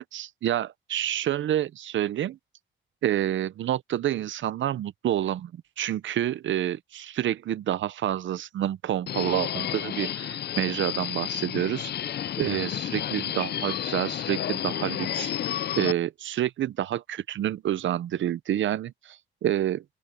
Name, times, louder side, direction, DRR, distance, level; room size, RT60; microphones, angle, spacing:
voice 1, 0.0-2.4 3.0-11.9 12.4-15.3 15.8-19.8, right 11 dB, 75° right, 0.6 m, -28 dB
Subway metro underground, 9.1-15.9, left 10 dB, 55° left, 0.4 m, -31 dB
open air
cardioid pair, 115°, 20 cm